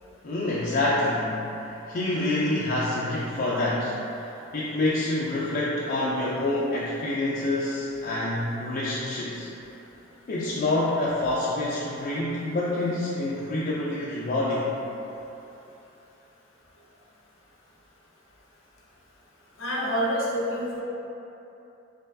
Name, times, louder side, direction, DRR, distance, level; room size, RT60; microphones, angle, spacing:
voice 1, 0.2-1.4 1.9-9.5 10.3-14.7, left 2 dB, 50° left, -7 dB, 0.4 m, -27 dB
voice 2, 19.6-20.8, equal, 85° left, -5 dB, 0.8 m, -27 dB
4.6 x 3.0 x 2.6 m, 2.9 s
head